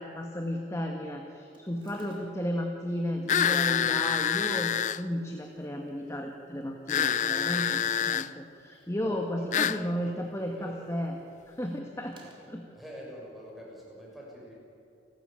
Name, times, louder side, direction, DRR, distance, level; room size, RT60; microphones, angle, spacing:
voice 1, 0.0-11.2 11.5-12.2 12.5-12.6, equal, 15° left, 2 dB, 1.6 m, -34 dB
sound 1, 1.5-2.6 3.6-4.2 4.9-5.6 6.0-6.1 6.2-6.3 7.8-8.4 9.5-10.2 10.5-10.9 12.0-12.7, right 1 dB, 25° right, 3.2 m, -57 dB
sound 2, 3.3-5.0 6.9-8.3 9.5-9.8, left 8 dB, 40° left, 0.4 m, -26 dB
voice 2, 9.0-10.9 12.2-12.3 12.7-14.5, equal, ahead, -3 dB, 6.6 m, -46 dB
30.0 x 13.5 x 8.9 m, 2.8 s
head